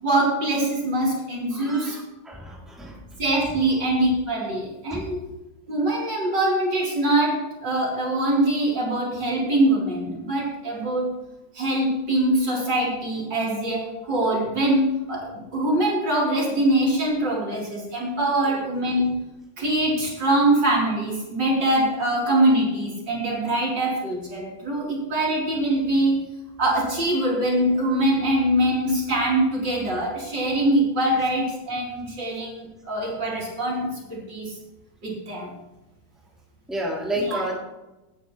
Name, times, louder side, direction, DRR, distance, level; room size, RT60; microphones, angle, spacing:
voice 1, 0.0-2.0 3.2-5.3 5.7-11.2 11.5-19.1 19.6-26.2 26.6-34.6 35.0-35.5 37.2-37.4, right 1 dB, 60° right, -4 dB, 4.4 m, -23 dB
voice 2, 1.5-3.0 4.9-5.0 36.7-37.6, right 1 dB, ahead, -4 dB, 2.9 m, -30 dB
19.0 x 10.0 x 3.2 m, 1.0 s
omnidirectional pair, 2.2 m